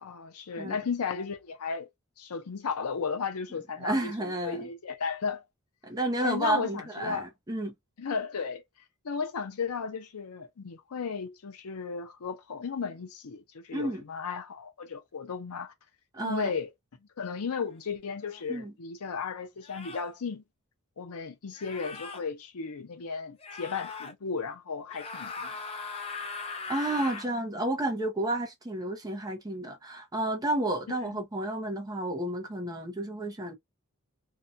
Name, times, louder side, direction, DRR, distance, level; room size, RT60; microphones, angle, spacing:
voice 1, 0.0-1.9 2.2-5.4 6.2-7.3 8.0-8.6 9.0-15.7 16.2-16.7 17.2-20.4 21.0-25.7, left 5 dB, 80° left, 0.6 m, -35 dB
voice 2, 3.8-4.7 5.8-7.7 13.7-14.0 16.1-16.5 18.5-18.7 26.7-33.5, right 1 dB, 15° right, 0.6 m, -31 dB
sound 1, 18.3-18.4 19.6-20.1 21.5-22.2 23.4-24.1 24.9-27.3, left 4 dB, 25° left, 0.4 m, -39 dB
2.7 x 2.2 x 2.5 m
head